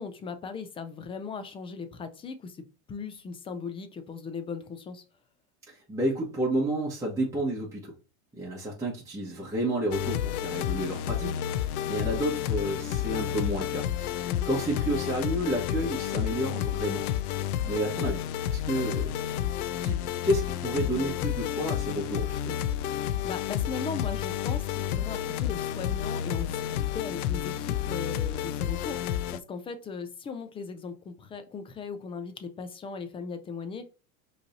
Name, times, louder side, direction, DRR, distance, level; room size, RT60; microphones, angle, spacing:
voice 1, 0.0-5.0 14.3-14.6 23.2-26.6 26.9-33.9, left 5 dB, 15° left, 0.3 m, -38 dB
voice 2, 5.7-7.9 8.3-11.4 11.8-17.0 17.7-18.2 18.5-19.1 19.8-22.6, right 1 dB, 5° right, 1.4 m, -30 dB
sound 1, 9.9-29.4, left 11 dB, 80° left, 0.6 m, -30 dB
5.1 x 3.3 x 2.7 m
supercardioid pair, 120°, 43 cm